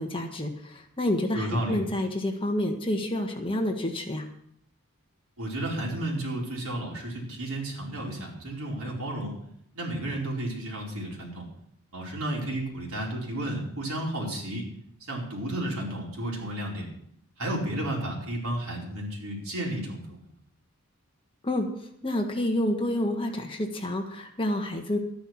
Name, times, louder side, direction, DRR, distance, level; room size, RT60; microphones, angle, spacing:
voice 1, 0.0-4.2 21.4-21.7 22.0-25.0, left 1 dB, 25° left, 3 dB, 1.5 m, -28 dB
voice 2, 1.3-1.8 5.4-9.3 9.7-11.5 11.9-14.6 15.1-16.9 17.4-20.3, right 1 dB, 75° right, -2 dB, 4.7 m, -32 dB
13.0 x 10.5 x 5.9 m, 0.70 s
head